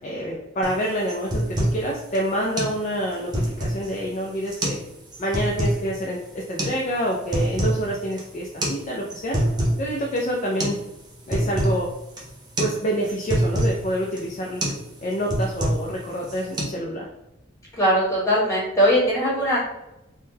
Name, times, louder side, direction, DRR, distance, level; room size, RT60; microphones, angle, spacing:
voice 1, 0.0-4.8 5.2-9.4 9.8-10.8 11.3-11.9 12.6-14.6 15.0-17.0, equal, 40° left, -2 dB, 0.4 m, -27 dB
sound 1, 0.6-0.8 1.1-1.8 2.1-2.2 2.6-2.8 3.1-3.9 4.5-4.8 5.1-5.8 6.6-6.8 7.1-7.8 8.1-8.2 8.6-8.8 9.1-9.8 10.2-10.3 10.6-10.8 11.1-11.8 12.2-12.3 12.6-12.8 13.0-13.8 14.2-14.3 14.6-14.8 15.1-15.9 16.2-16.6, right 1 dB, 20° right, 0.6 m, -25 dB
voice 2, 17.8-19.6, equal, 15° left, -9 dB, 1.5 m, -20 dB
3.5 x 2.2 x 2.7 m, 0.92 s
head